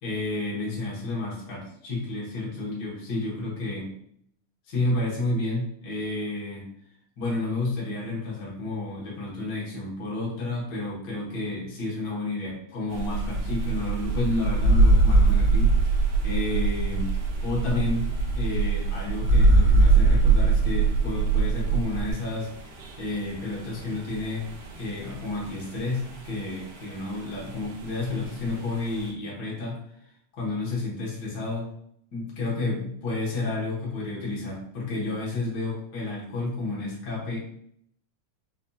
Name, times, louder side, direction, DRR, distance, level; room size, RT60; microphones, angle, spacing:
voice 1, 0.0-3.9 4.7-6.7 7.2-15.8 16.2-17.2 17.4-22.5 23.0-24.5 24.8-29.8 30.3-31.7 32.1-37.4, left 2 dB, 80° left, -5 dB, 0.9 m, -31 dB
sound 1, 12.9-29.1, right 3 dB, 75° right, 2.0 m, -44 dB
sound 2, 13.0-22.1, right 3 dB, 90° right, 1.5 m, -21 dB
5.1 x 2.7 x 2.3 m, 0.67 s
omnidirectional pair, 3.7 m